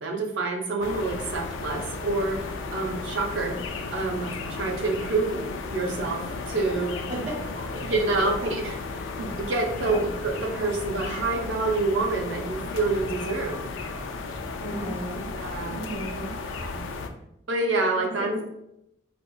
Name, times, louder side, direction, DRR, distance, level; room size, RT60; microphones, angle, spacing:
voice 1, 0.0-3.6 3.9-5.4 5.7-7.0 7.8-13.6 15.3-15.8 16.7-16.8 17.5-18.3, right 3 dB, 75° right, 2 dB, 0.6 m, -27 dB
sound 1, 0.8-17.1, left 3 dB, 80° left, 0.4 m, -34 dB
voice 2, 7.1-7.8 8.4-8.5 9.8-10.0 14.6-15.2 15.7-16.3 18.2-18.4, equal, 35° right, -5 dB, 1.5 m, -33 dB
4.3 x 2.4 x 2.3 m, 0.79 s
head